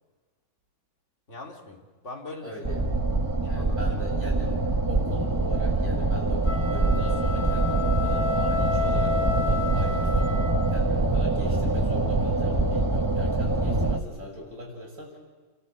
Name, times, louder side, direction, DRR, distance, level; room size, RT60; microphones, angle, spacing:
voice 1, 1.3-2.6 3.4-4.1 14.1-14.2, left 2 dB, 35° left, 1 dB, 3.1 m, -42 dB
voice 2, 2.4-2.8 3.5-4.5 4.9-10.3 10.7-15.2, equal, 40° right, -2 dB, 7.4 m, -40 dB
sound 1, 2.6-14.0, right 2 dB, 20° right, 0.5 m, -24 dB
sound 2, 6.4-10.9, left 6 dB, 80° left, 4.8 m, -31 dB
28.5 x 13.5 x 9.5 m, 1.4 s
omnidirectional pair, 2.2 m